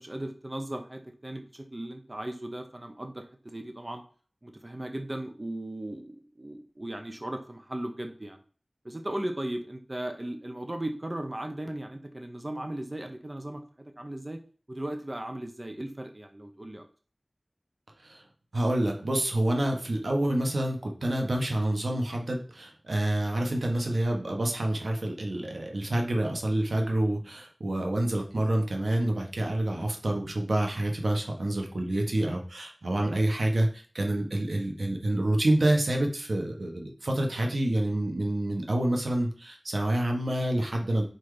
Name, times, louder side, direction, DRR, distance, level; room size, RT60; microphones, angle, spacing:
voice 1, 0.0-4.0 4.4-8.4 8.8-14.4 14.7-16.8, right 1 dB, 35° right, 4 dB, 1.0 m, -37 dB
voice 2, 18.5-41.0, right 1 dB, 90° right, 2 dB, 1.3 m, -27 dB
4.6 x 4.4 x 4.9 m, 0.41 s
wide cardioid pair, 55°, 0 cm